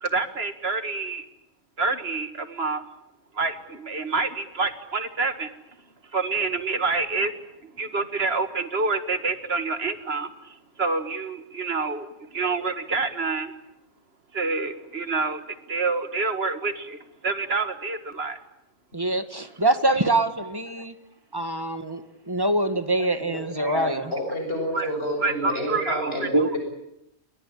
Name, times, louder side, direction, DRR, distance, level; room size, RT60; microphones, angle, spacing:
voice 1, 0.0-1.3 1.8-2.8 3.4-5.5 6.1-7.3 7.6-13.5 14.3-15.4 15.7-18.4 24.7-24.9 25.2-26.3, right 3 dB, 55° right, 10 dB, 2.0 m, -27 dB
voice 2, 18.9-20.9 21.3-24.1 26.3-26.5, right 2 dB, 20° right, 9 dB, 1.8 m, -24 dB
voice 3, 23.3-26.6, equal, 50° left, 2 dB, 7.4 m, -29 dB
28.5 x 22.5 x 8.7 m, 0.81 s
omnidirectional pair, 1.3 m